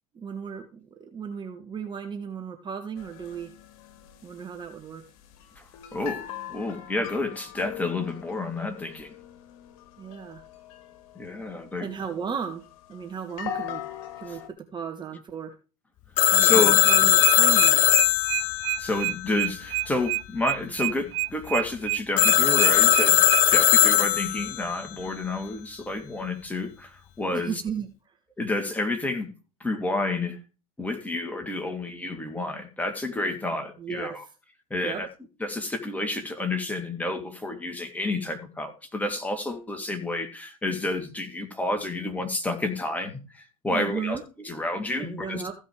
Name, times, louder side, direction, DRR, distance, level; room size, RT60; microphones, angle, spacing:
voice 1, 0.1-3.5 4.2-5.0 10.0-10.4 11.8-12.6 12.9-13.8 14.2-15.6 16.3-17.8 27.3-27.9 33.8-34.3 34.8-35.0 43.7-44.2 45.0-45.5, right 7 dB, 25° right, 1.6 m, -35 dB
sound 1, 3.0-14.5, left 10 dB, 60° left, 1.7 m, -41 dB
voice 2, 5.9-9.1 11.1-11.9 14.3-14.4 16.4-16.8 18.8-27.5 28.4-29.3 29.6-30.4 30.8-34.2 34.7-35.1 35.4-45.4, left 2 dB, 10° left, 2.8 m, -30 dB
Telephone, 16.2-19.8 22.2-24.7, left 13 dB, 40° left, 0.9 m, -20 dB
sound 2, 16.8-23.4, right 20 dB, 60° right, 0.4 m, -28 dB
15.0 x 5.4 x 5.0 m
hypercardioid pair, 90°, 19 cm